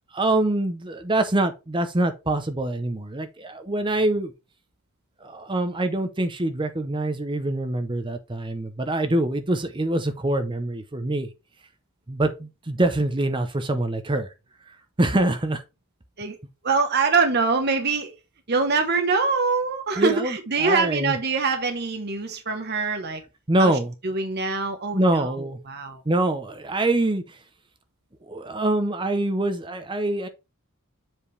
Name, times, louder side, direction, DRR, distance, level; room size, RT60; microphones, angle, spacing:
voice 1, 0.1-4.3 5.2-11.3 12.1-14.3 14.7-15.6 20.0-21.2 23.5-23.9 24.9-25.6 26.1-27.4 28.3-30.3, right 1 dB, 20° right, 0.7 m, -25 dB
voice 2, 16.6-18.1 18.5-23.2 23.6-23.7 24.0-25.3 25.7-26.0, right 4 dB, 50° right, 1.0 m, -24 dB
7.4 x 5.1 x 3.2 m
head